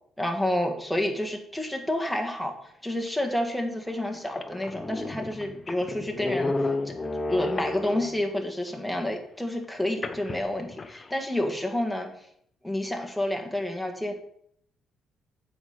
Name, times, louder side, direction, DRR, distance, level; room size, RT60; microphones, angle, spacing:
voice 1, 0.2-6.9 7.3-12.1 12.6-14.1, left 1 dB, ahead, 3 dB, 1.6 m, -29 dB
sound 1, 3.3-3.4 4.0-4.1 4.3-8.3 10.0-11.1, left 3 dB, 30° left, 0.7 m, -32 dB
7.8 x 5.1 x 5.7 m, 0.67 s
cardioid pair, 90°, 0 cm